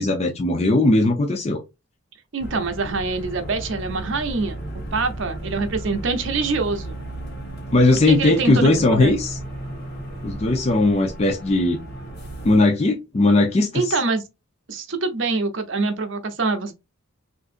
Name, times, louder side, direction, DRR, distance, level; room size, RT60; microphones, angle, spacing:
voice 1, 0.0-1.6 7.7-9.4 10.2-11.8 12.4-13.9, left 2 dB, 30° left, 0.4 m, -18 dB
voice 2, 2.3-7.0 8.1-9.1 13.7-14.2 14.7-16.7, right 3 dB, 60° right, 0.7 m, -25 dB
sound 1, 2.4-12.6, right 1 dB, 50° left, 1.0 m, -34 dB
3.6 x 2.6 x 2.4 m
head